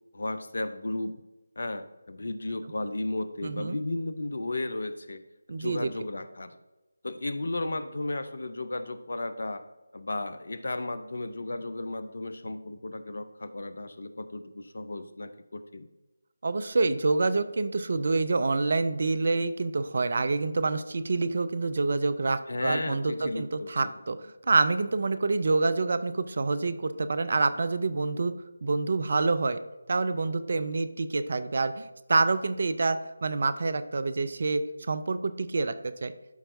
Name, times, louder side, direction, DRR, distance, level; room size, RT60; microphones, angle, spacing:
voice 1, 0.1-1.2 1.6-5.2 5.5-6.5 7.0-9.6 9.9-15.9 22.5-23.9, left 2 dB, 55° left, 12 dB, 0.5 m, -34 dB
voice 2, 3.4-3.8 5.5-5.9 16.4-28.3 28.6-29.6 29.9-35.7 36.0-36.1, right 3 dB, 45° right, 12 dB, 0.4 m, -27 dB
12.0 x 4.4 x 2.6 m, 1.1 s
figure-of-eight pair, 155°, 0 cm